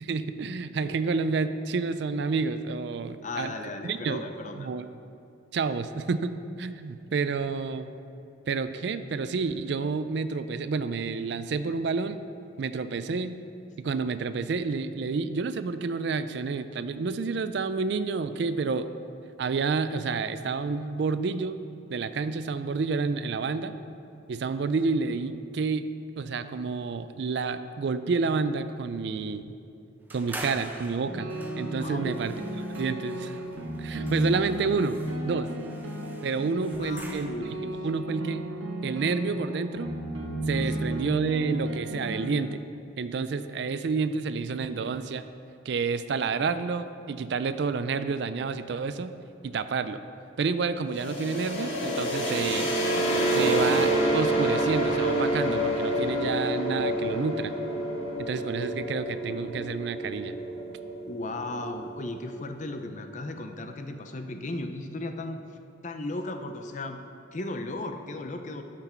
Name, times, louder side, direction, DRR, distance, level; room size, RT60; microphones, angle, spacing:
voice 1, 0.0-3.5 3.8-4.2 4.6-4.9 5.5-7.9 8.5-12.2 12.6-13.4 13.8-18.9 19.4-21.6 21.9-23.7 24.3-25.9 26.2-29.4 30.1-31.3 31.6-32.3 32.8-33.4 33.8-35.0 35.2-35.5 36.2-38.4 38.8-39.9 40.5-42.6 43.0-45.2 45.7-49.2 49.4-50.0 50.4-52.7 53.3-57.5 58.2-60.4, right 4 dB, 60° right, 12 dB, 0.4 m, -29 dB
voice 2, 3.2-4.7 31.8-32.3 33.9-34.1 36.8-37.6 40.6-40.9 61.0-65.6 65.8-67.0 67.3-68.6, left 2 dB, 40° left, 6 dB, 0.6 m, -36 dB
sound 1, 30.1-37.6, right 1 dB, 10° right, 0.7 m, -44 dB
sound 2, 31.0-42.3, right 1 dB, 90° right, 1.2 m, -34 dB
sound 3, 50.9-62.6, right 1 dB, 80° left, 1.6 m, -28 dB
12.5 x 6.0 x 4.4 m, 2.6 s
head